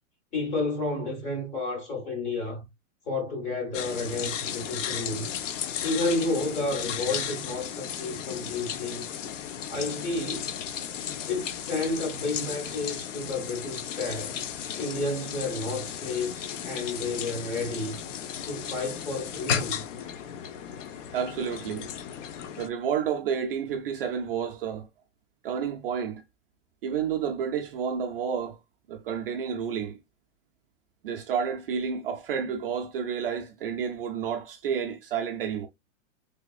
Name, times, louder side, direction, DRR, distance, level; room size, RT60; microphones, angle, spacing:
voice 1, 0.3-2.6 3.1-5.3 5.8-9.0 9.7-10.6 11.3-14.4 14.8-18.0 18.4-19.8, left 2 dB, 20° left, 0.9 m, -31 dB
sound 1, 3.7-22.7, left 8 dB, 65° left, 0.8 m, -35 dB
voice 2, 21.1-21.9 22.6-24.9 25.4-26.2 26.8-28.6 28.9-30.0 31.0-35.7, right 7 dB, 45° right, 0.4 m, -30 dB
3.3 x 3.3 x 2.3 m
supercardioid pair, 170°, 40 cm